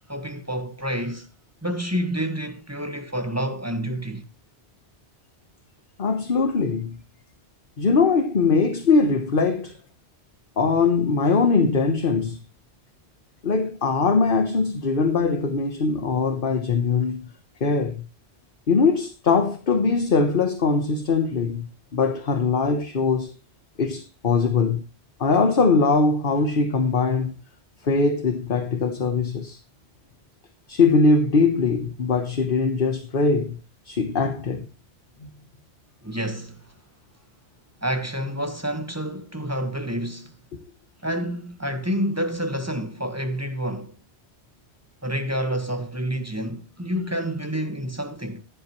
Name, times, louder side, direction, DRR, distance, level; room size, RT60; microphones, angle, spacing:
voice 1, 0.1-1.3 1.6-4.2 36.0-36.7 37.8-40.3 41.0-43.9 45.0-48.4, equal, 15° right, 1.6 m, -28 dB
voice 2, 6.0-7.0 7.8-9.7 10.6-12.4 13.4-17.2 17.6-18.0 18.7-21.7 21.9-23.3 23.8-24.8 25.2-27.4 27.8-29.6 30.7-33.6 33.8-34.7, left 4 dB, 50° left, 1.3 m, -21 dB
15.0 x 10.5 x 3.2 m
omnidirectional pair, 1.1 m